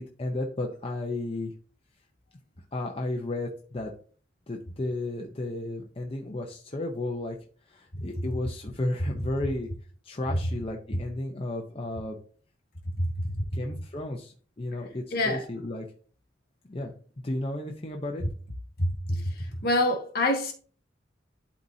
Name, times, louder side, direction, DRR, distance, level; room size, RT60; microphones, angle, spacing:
voice 1, 0.0-1.5 2.7-3.9 4.5-7.4 7.7-9.7 10.0-12.2 13.5-15.9 16.7-16.9 17.2-18.2, left 2 dB, 30° left, 0.8 m, -33 dB
voice 2, 13.0-13.4 15.1-15.5 18.8-20.5, left 1 dB, 55° left, 1.7 m, -27 dB
11.5 x 4.1 x 2.8 m
head